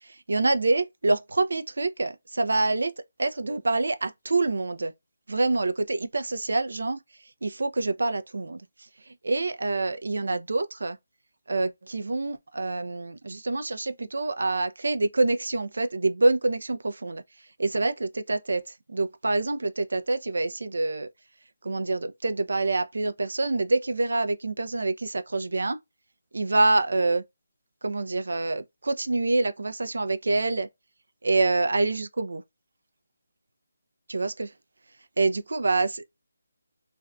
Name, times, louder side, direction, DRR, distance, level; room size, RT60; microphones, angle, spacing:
voice 1, 0.0-2.9 3.2-4.9 5.3-7.0 7.4-8.7 9.1-11.0 11.5-17.2 17.6-18.6 18.9-21.1 21.6-25.8 26.3-27.2 27.8-30.7 31.2-32.4 34.1-34.5 35.2-36.0, right 2 dB, 75° right, 0.4 m, -26 dB
2.5 x 2.2 x 2.3 m
hypercardioid pair, 180°, 0 cm